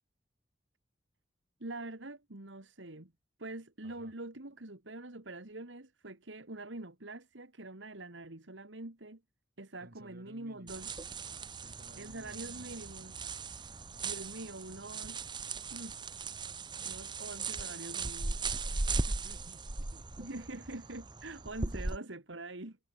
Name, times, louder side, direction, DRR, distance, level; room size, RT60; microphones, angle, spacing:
voice 1, 1.6-3.1 3.4-9.2 9.6-10.9 12.0-13.2 13.6-13.8 14.0-16.0 16.8-18.5 20.2-22.8, right 2 dB, 75° right, 2.3 m, -45 dB
voice 2, 9.8-10.9 11.6-12.8 18.8-20.0 21.7-21.8, right 1 dB, 55° right, 3.8 m, -57 dB
sound 1, 10.7-22.0, right 3 dB, 25° right, 0.9 m, -38 dB
head